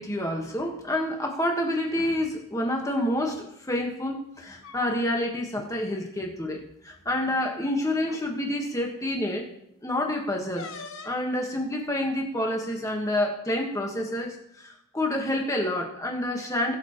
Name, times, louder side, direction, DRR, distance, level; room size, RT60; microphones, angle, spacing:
voice 1, 0.0-9.5 9.8-10.7 11.0-16.7, left 1 dB, 15° left, 2 dB, 1.5 m, -28 dB
sound 1, 2.8-3.1 4.3-5.2 5.5-5.7 6.1-6.3 7.3-7.4 8.0-8.3 10.5-11.3, left 4 dB, 75° left, 1.1 m, -42 dB
20.5 x 7.1 x 3.1 m, 0.78 s
head